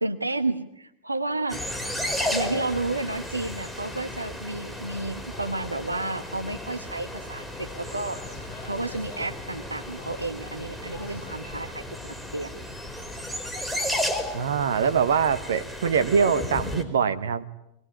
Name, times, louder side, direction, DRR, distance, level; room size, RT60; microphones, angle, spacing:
voice 1, 0.0-1.6 2.3-8.2 8.6-12.5, right 2 dB, 80° right, 8 dB, 1.0 m, -31 dB
sound 1, 1.5-16.8, left 1 dB, ahead, 3.9 m, -34 dB
sound 2, 5.3-11.4, left 3 dB, 70° left, 4.7 m, -47 dB
voice 2, 14.3-17.4, right 6 dB, 65° right, 14 dB, 1.2 m, -23 dB
23.0 x 20.0 x 9.8 m, 0.82 s
figure-of-eight pair, 90°, 0 cm